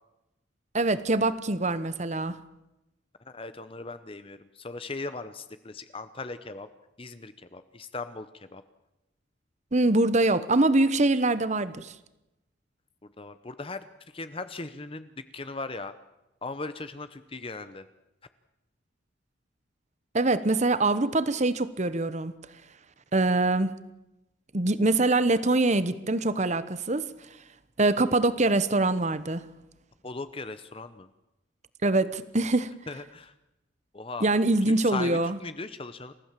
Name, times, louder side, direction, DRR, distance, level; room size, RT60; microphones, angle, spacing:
voice 1, 0.7-2.4 9.7-11.9 20.1-22.3 23.1-23.7 24.5-27.1 27.8-29.4 31.8-32.7 34.2-35.4, right 2 dB, 35° right, 15 dB, 1.0 m, -24 dB
voice 2, 3.2-6.7 7.0-8.6 13.2-13.8 14.1-15.9 16.4-17.9 30.0-31.1 32.9-33.3 33.9-34.3 34.7-36.1, left 3 dB, 30° left, 11 dB, 0.9 m, -38 dB
28.5 x 15.5 x 7.5 m, 0.95 s
head